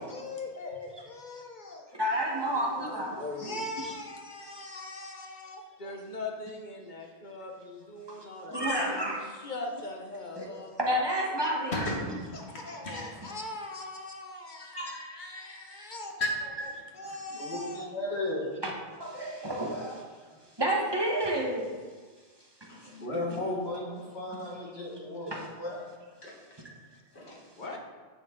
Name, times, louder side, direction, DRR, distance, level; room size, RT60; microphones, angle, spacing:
voice 1, 0.0-2.0 2.8-9.0 9.4-10.7 12.3-16.2 16.9-17.9 19.7-19.9 27.6-27.8, left 2 dB, 45° left, 2 dB, 1.3 m, -41 dB
voice 2, 1.9-3.5 3.8-3.9 8.1-9.4 10.3-10.5 10.8-11.7 18.6-20.1 20.6-21.7 22.6-23.0 25.3-25.5, right 1 dB, 25° right, -1 dB, 1.4 m, -31 dB
voice 3, 12.5-13.4 14.7-15.2 16.2-16.3 17.1-18.5 22.7-25.8 26.2-26.3 27.1-27.4, left 2 dB, 75° left, -2 dB, 2.2 m, -35 dB
10.5 x 7.1 x 3.9 m, 1.5 s
omnidirectional pair, 1.1 m